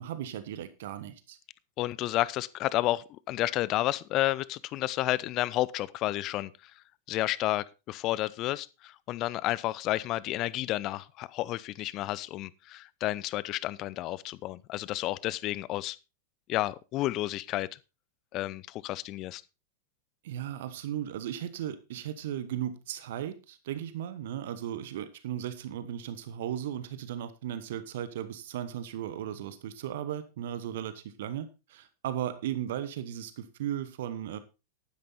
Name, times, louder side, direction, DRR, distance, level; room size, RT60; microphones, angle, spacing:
voice 1, 0.0-1.4 20.2-34.4, right 10 dB, 55° right, 1.2 m, -36 dB
voice 2, 1.8-6.7 7.1-16.0 16.5-17.7 18.3-19.4, left 16 dB, 35° left, 0.6 m, -31 dB
12.0 x 10.0 x 4.1 m
figure-of-eight pair, 90°, 0 cm